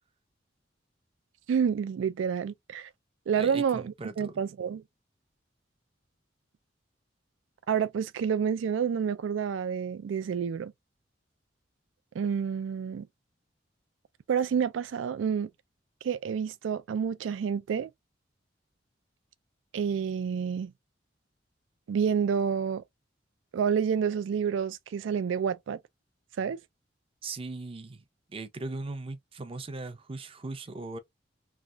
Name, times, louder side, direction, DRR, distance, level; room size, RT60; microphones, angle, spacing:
voice 1, 1.5-2.9 3.3-4.8 7.7-10.7 12.1-13.1 14.3-15.5 16.0-17.9 19.7-20.7 21.9-22.8 23.5-25.8 26.4-26.6, right 7 dB, 90° right, 0.3 m, -29 dB
voice 2, 3.3-4.3 27.2-31.0, right 3 dB, 30° right, 0.5 m, -39 dB
3.2 x 2.3 x 2.5 m
head